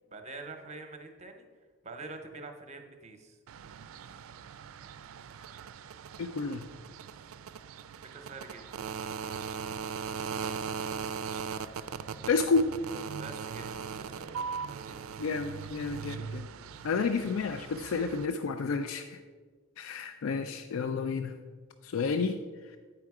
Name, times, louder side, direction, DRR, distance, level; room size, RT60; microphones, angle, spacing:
voice 1, 0.1-1.4 1.8-3.4 8.1-8.8 13.2-14.4 14.6-15.2, right 3 dB, 35° right, 5 dB, 0.8 m, -46 dB
sound 1, 3.5-18.3, right 6 dB, 85° right, 0.4 m, -39 dB
voice 2, 6.2-6.6 12.3-12.6 15.2-16.5 16.8-19.2 19.8-21.3 21.8-22.4, left 4 dB, 80° left, 9 dB, 0.4 m, -30 dB
8.7 x 4.7 x 4.7 m, 1.5 s
head